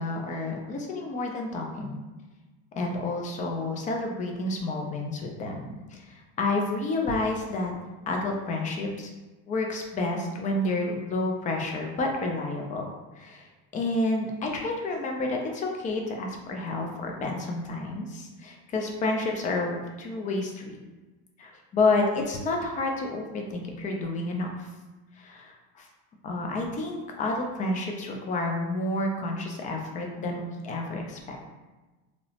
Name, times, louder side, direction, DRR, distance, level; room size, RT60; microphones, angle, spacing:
voice 1, 0.0-2.0 2.8-7.7 8.1-9.1 9.5-12.9 13.2-20.8 21.4-24.7 25.2-25.9 26.2-31.5, left 2 dB, 25° left, 1 dB, 0.4 m, -30 dB
2.9 x 2.0 x 2.7 m, 1.2 s
supercardioid pair, 125°, 33 cm